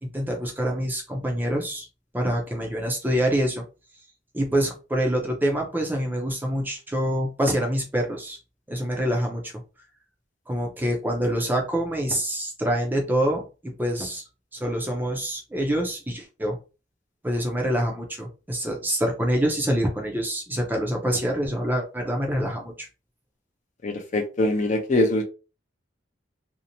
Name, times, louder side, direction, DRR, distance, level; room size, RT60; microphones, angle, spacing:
voice 1, 0.0-1.9 2.1-3.6 4.3-8.4 8.7-9.5 10.5-14.2 14.5-16.6 17.2-22.9, equal, 10° right, 1 dB, 0.5 m, -26 dB
voice 2, 23.8-25.2, left 1 dB, 40° left, 4 dB, 0.5 m, -23 dB
2.6 x 2.0 x 2.8 m, 0.31 s
head